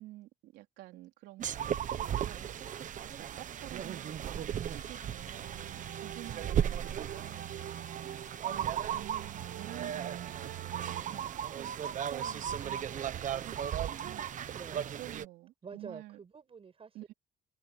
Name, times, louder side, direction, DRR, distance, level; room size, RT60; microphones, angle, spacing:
voice 1, 0.0-2.5 3.2-7.8 8.4-14.2 15.0-16.2 16.9-17.1, right 17 dB, 85° right, 3.8 m, -50 dB
sound 1, 1.4-15.3, right 9 dB, 50° right, 1.1 m, -36 dB
Bowed string instrument, 4.7-11.3, left 7 dB, 65° left, 3.2 m, -60 dB
sound 2, 5.3-11.0, right 12 dB, 70° right, 2.2 m, -44 dB
voice 2, 12.2-12.8 14.5-14.9 15.6-17.1, right 6 dB, 35° right, 7.7 m, -50 dB
cardioid pair, 110°, 17 cm